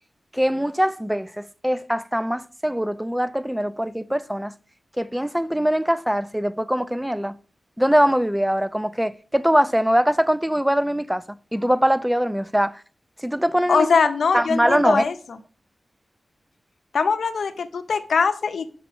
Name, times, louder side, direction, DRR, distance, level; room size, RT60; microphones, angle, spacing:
voice 1, 0.3-4.5 5.0-7.4 7.8-12.8 13.2-13.9 14.3-15.0, equal, 5° right, 0.5 m, -22 dB
voice 2, 13.7-15.1 16.9-18.7, left 5 dB, 85° left, 0.7 m, -21 dB
5.9 x 5.4 x 6.1 m
cardioid pair, 60°, 0 cm